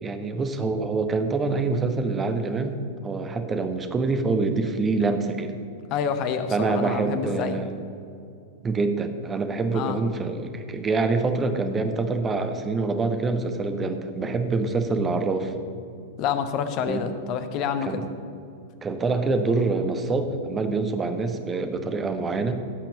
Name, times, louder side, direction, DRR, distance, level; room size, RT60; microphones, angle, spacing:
voice 1, 0.0-5.5 6.5-7.8 8.6-15.5 16.9-17.1 17.8-18.1 18.8-22.6, right 3 dB, 20° right, 7 dB, 1.1 m, -26 dB
voice 2, 5.9-7.6 9.7-10.0 16.2-18.0, left 7 dB, 40° left, 9 dB, 1.0 m, -27 dB
16.0 x 5.9 x 7.3 m, 2.5 s
figure-of-eight pair, 95°, 0 cm